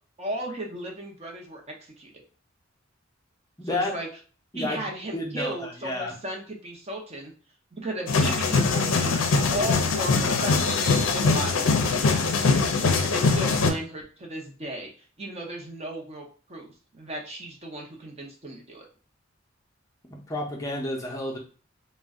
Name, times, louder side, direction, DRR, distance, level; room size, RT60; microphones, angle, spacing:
voice 1, 0.2-2.1 3.6-4.1 4.5-7.3 7.7-9.1 9.5-12.3 13.0-14.9 15.2-18.9, right 1 dB, 30° right, 0 dB, 0.6 m, -35 dB
voice 2, 3.6-3.9 4.5-4.8 5.1-6.1 20.1-21.4, left 1 dB, 15° left, -1 dB, 0.5 m, -30 dB
sound 1, 8.1-13.7, left 4 dB, 80° left, 0.5 m, -22 dB
2.4 x 2.1 x 3.5 m, 0.38 s
head